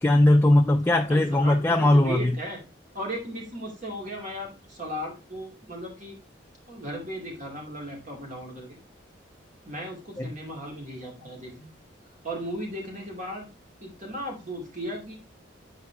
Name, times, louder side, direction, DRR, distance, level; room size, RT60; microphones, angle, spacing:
voice 1, 0.0-2.4 10.2-10.3, left 1 dB, 10° left, 0.4 m, -20 dB
voice 2, 1.1-2.6 2.9-6.2 6.7-8.8 9.6-11.7 12.2-13.5 13.8-15.2, equal, 45° right, 2.5 m, -36 dB
8.1 x 4.8 x 3.5 m
head